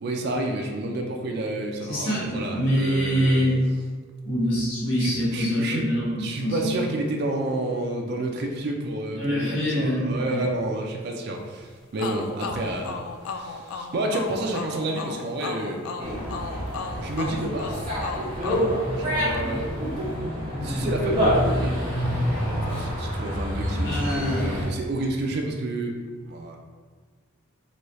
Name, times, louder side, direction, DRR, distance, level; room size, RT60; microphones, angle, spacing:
voice 1, 0.0-3.4 5.0-5.9 6.2-15.9 17.0-17.9 18.9-19.7 20.6-21.8 22.3-26.6, right 2 dB, 50° right, 1 dB, 0.4 m, -30 dB
voice 2, 1.8-3.6 4.2-6.9 9.1-10.4 23.8-24.4, equal, 65° left, -8 dB, 1.4 m, -25 dB
sound 1, 12.0-19.6, left 4 dB, 90° left, 0.3 m, -35 dB
Dog, 16.0-24.6, equal, 25° right, 1.2 m, -27 dB
4.1 x 2.3 x 3.1 m, 1.5 s
head